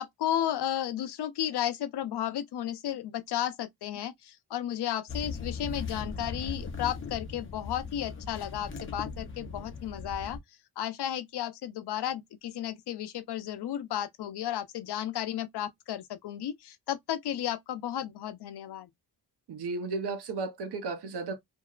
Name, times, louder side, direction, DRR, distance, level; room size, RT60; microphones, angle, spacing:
voice 1, 0.0-10.4 10.8-18.9, left 11 dB, 85° left, 0.6 m, -33 dB
sound 1, 5.1-10.4, left 4 dB, 30° left, 0.7 m, -38 dB
voice 2, 19.5-21.4, right 3 dB, 80° right, 0.8 m, -34 dB
2.9 x 2.7 x 2.3 m
wide cardioid pair, 165°, 39 cm